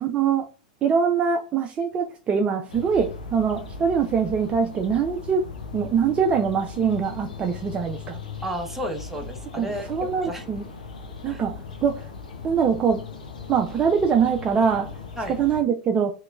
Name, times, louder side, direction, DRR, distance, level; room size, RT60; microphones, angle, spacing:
voice 1, 0.0-0.4 0.8-5.4 5.7-8.2 9.6-10.7 11.2-12.1 12.4-13.0 13.5-15.0 15.3-16.1, right 6 dB, 25° right, 0.4 m, -23 dB
sound 1, 2.7-15.6, left 5 dB, 75° left, 0.7 m, -38 dB
voice 2, 8.4-9.9 10.2-10.4 11.3-11.4 15.2-15.4, equal, 5° right, 0.8 m, -32 dB
3.1 x 2.8 x 2.3 m
figure-of-eight pair, 95°, 4 cm